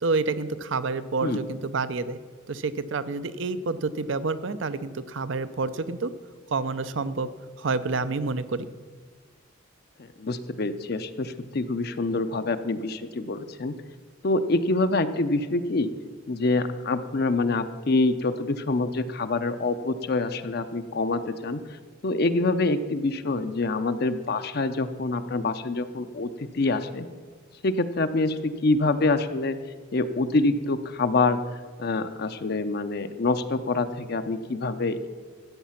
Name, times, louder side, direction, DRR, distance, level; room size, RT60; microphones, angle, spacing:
voice 1, 0.0-2.2 2.5-6.1 6.5-7.3 7.6-8.7, right 3 dB, 70° right, 14 dB, 0.6 m, -28 dB
voice 2, 10.0-13.7 14.2-15.9 16.3-21.6 22.0-27.1 27.6-29.6 29.9-31.4 31.8-35.1, left 3 dB, 50° left, 9 dB, 0.6 m, -26 dB
13.5 x 8.3 x 5.8 m, 1.5 s
head